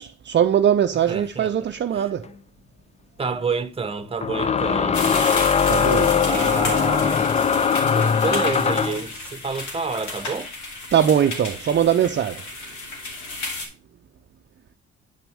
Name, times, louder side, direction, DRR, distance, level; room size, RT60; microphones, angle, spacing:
voice 1, 0.0-2.3 5.7-6.3 10.9-12.5, right 9 dB, 40° right, 0.5 m, -21 dB
voice 2, 1.1-1.5 1.9-2.1 3.2-5.0 6.2-7.3 7.8-10.5, right 4 dB, 20° right, 0.9 m, -29 dB
sound 1, 2.2-2.3 4.2-9.0, left 6 dB, 20° left, 0.4 m, -20 dB
sound 2, 4.9-13.7, left 2 dB, 75° left, 2.8 m, -33 dB
9.2 x 6.0 x 3.5 m
cardioid pair, 90°, 30 cm